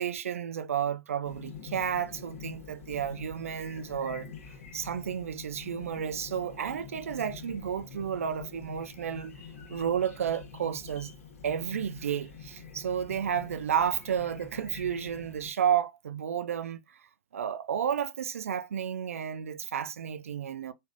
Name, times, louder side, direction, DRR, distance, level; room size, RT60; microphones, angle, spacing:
voice 1, 0.0-4.3 4.7-9.4 9.7-11.1 11.4-17.0 17.3-20.7, right 8 dB, 75° right, 0.4 m, -32 dB
Chirp tweet, 1.2-15.5, left 6 dB, 75° left, 1.1 m, -46 dB
3.3 x 2.4 x 2.5 m
figure-of-eight pair, 100°, 8 cm